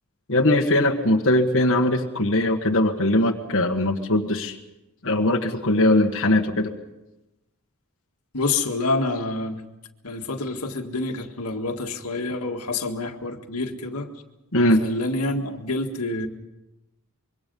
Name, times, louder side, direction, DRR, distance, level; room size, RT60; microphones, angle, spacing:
voice 1, 0.3-4.6 5.0-6.7 14.5-14.8, left 1 dB, 60° left, 2 dB, 1.6 m, -20 dB
voice 2, 8.3-9.6 10.0-14.1 14.8-16.3, left 2 dB, 85° left, 4 dB, 1.9 m, -27 dB
25.0 x 23.5 x 5.5 m, 0.98 s
head